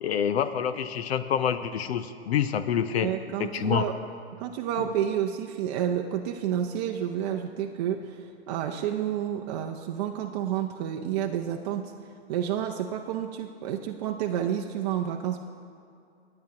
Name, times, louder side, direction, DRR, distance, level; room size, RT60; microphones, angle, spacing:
voice 1, 0.0-3.1 3.4-3.9 4.8-4.9, left 8 dB, 75° left, 11 dB, 0.8 m, -27 dB
voice 2, 3.0-3.9 4.4-11.9 12.3-15.4, right 10 dB, 40° right, 2 dB, 0.6 m, -30 dB
18.0 x 8.8 x 2.9 m, 2.6 s
hypercardioid pair, 135°, 32 cm